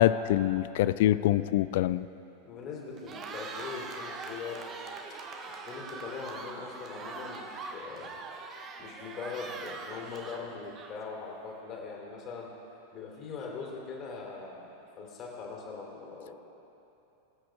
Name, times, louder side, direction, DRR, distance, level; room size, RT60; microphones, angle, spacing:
voice 1, 0.0-2.1, left 13 dB, 50° left, 16 dB, 0.3 m, -24 dB
voice 2, 2.4-4.6 5.1-8.1 8.8-12.5 12.9-16.4, left 5 dB, 35° left, -2 dB, 3.0 m, -41 dB
Cheering, 2.9-11.2, right 4 dB, 30° right, 1.1 m, -42 dB
23.0 x 8.6 x 3.5 m, 2.9 s
figure-of-eight pair, 90°, 0 cm